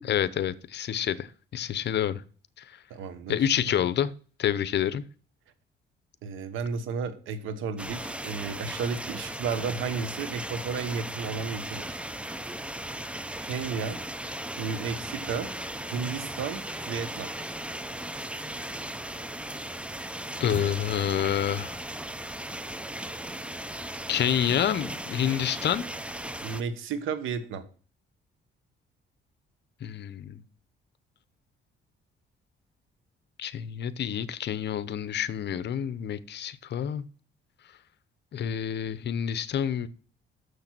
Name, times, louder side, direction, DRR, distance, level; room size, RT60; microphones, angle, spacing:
voice 1, 0.1-2.2 3.3-4.1 4.4-5.0 20.4-21.8 24.1-25.8 29.8-30.4 33.4-37.1 38.3-39.9, left 9 dB, 60° left, 16 dB, 0.7 m, -28 dB
voice 2, 2.9-3.5 6.2-12.0 13.4-14.0 14.6-15.5 15.9-17.3 26.4-27.7, right 5 dB, 85° right, 11 dB, 1.2 m, -33 dB
sound 1, 7.8-26.6, right 1 dB, 5° right, 0.6 m, -37 dB
6.8 x 6.6 x 6.0 m, 0.41 s
cardioid pair, 90°, 20 cm